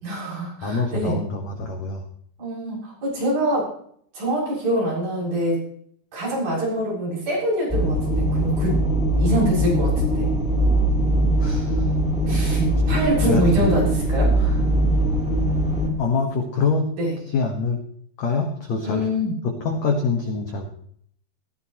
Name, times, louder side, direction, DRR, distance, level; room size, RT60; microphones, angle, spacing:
voice 1, 0.0-1.2 2.4-3.7 4.1-5.6 6.1-8.9 9.2-10.3 12.3-14.6 17.0-17.2 18.9-19.4, right 1 dB, 50° right, -5 dB, 8.8 m, -24 dB
voice 2, 0.6-2.0 11.4-11.9 12.9-13.0 13.2-13.7 16.0-16.9 17.3-17.8 18.2-19.0 19.6-20.7, left 4 dB, 80° left, 3 dB, 1.5 m, -25 dB
sound 1, 7.7-15.9, right 1 dB, ahead, 1.9 m, -21 dB
18.0 x 16.5 x 3.0 m, 0.63 s
omnidirectional pair, 5.5 m